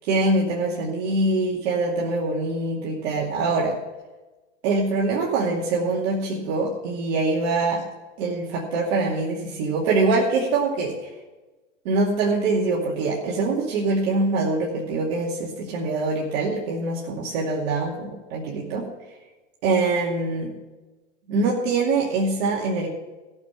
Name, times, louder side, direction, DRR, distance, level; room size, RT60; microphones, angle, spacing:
voice 1, 0.0-3.8 4.6-7.8 8.2-11.1 11.8-18.9 19.6-20.5 21.3-22.9, right 3 dB, 55° right, -3 dB, 2.5 m, -24 dB
14.5 x 7.1 x 7.2 m, 1.2 s
hypercardioid pair, 105°, 37 cm